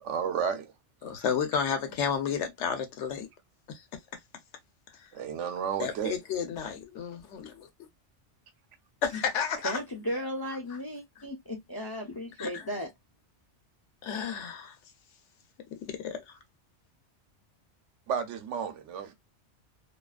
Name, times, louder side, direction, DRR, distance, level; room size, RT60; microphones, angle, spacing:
voice 1, 0.0-0.7 5.1-6.2 18.1-19.1, right 7 dB, 85° right, 0.9 m, -32 dB
voice 2, 1.0-3.3 3.7-3.8 5.8-7.7 9.0-9.8 12.4-12.6 14.0-14.7 15.7-16.4, left 7 dB, 75° left, 1.0 m, -32 dB
voice 3, 9.6-12.9, equal, 40° left, 0.3 m, -35 dB
2.6 x 2.4 x 2.2 m
omnidirectional pair, 1.2 m